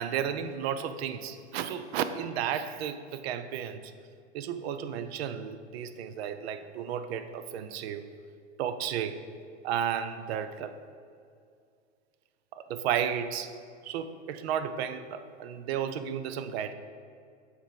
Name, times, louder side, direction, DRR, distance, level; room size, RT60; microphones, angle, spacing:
voice 1, 0.0-3.9 4.3-8.0 8.6-9.2 9.6-10.7 12.5-13.5 13.8-16.7, right 8 dB, 60° right, 11 dB, 0.6 m, -33 dB
7.0 x 4.6 x 5.2 m, 2.3 s
hypercardioid pair, 110°, 35 cm